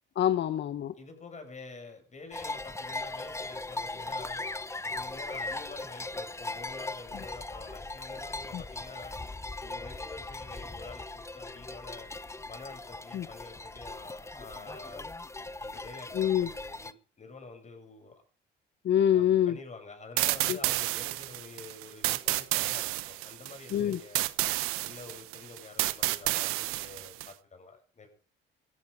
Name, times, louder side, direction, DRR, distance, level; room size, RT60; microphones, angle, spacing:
voice 1, 0.2-0.9 7.1-7.2 8.5-8.6 13.1-13.3 16.1-16.5 18.8-19.6 20.5-20.6 23.7-24.0, left 10 dB, 55° left, 12 dB, 1.2 m, -26 dB
voice 2, 0.9-4.4 4.8-12.1 12.5-15.1 15.6-18.1 19.1-24.2 24.8-28.2, left 3 dB, 35° left, 5 dB, 7.6 m, -48 dB
sound 1, 2.3-16.9, left 2 dB, 15° left, 1.0 m, -39 dB
sound 2, 20.2-27.3, right 18 dB, 85° right, 1.0 m, -31 dB
17.5 x 14.5 x 5.1 m, 0.39 s
supercardioid pair, 85°, 21 cm